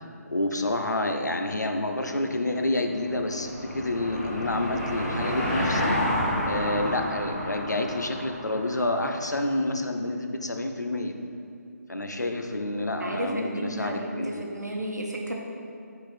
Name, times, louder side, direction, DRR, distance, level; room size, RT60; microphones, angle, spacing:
voice 1, 0.3-6.0 6.4-11.1 11.9-14.4, left 1 dB, 90° left, 5 dB, 0.6 m, -28 dB
Car passing by / Engine, 2.4-9.3, equal, 15° left, 1.2 m, -30 dB
voice 2, 12.8-15.4, right 1 dB, 80° right, 1 dB, 1.0 m, -33 dB
6.0 x 4.0 x 4.2 m, 2.6 s
figure-of-eight pair, 150°, 9 cm